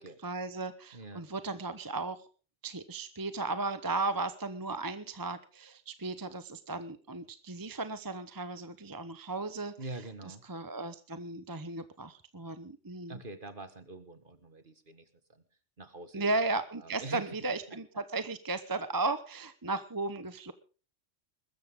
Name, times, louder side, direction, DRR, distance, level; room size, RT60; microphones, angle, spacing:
voice 1, 0.2-2.2 2.6-9.7 10.3-13.2 16.1-20.5, right 3 dB, 20° right, 11 dB, 1.0 m, -35 dB
voice 2, 0.9-1.2 9.8-10.4 13.1-15.4 15.8-16.2 16.8-17.3 17.7-17.8, right 2 dB, 45° right, 10 dB, 2.0 m, -45 dB
22.0 x 13.5 x 3.8 m, 0.37 s
omnidirectional pair, 1.2 m